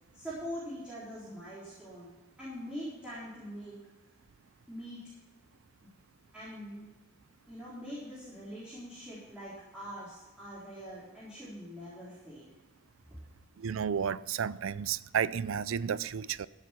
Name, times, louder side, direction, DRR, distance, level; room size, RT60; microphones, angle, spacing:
voice 1, 0.1-2.1 2.4-3.8 4.7-5.0 5.8-5.9 6.3-6.8 7.5-12.5, equal, 5° right, 4.1 m, -43 dB
voice 2, 13.6-16.5, right 7 dB, 85° right, 0.4 m, -32 dB
15.5 x 7.5 x 5.9 m
head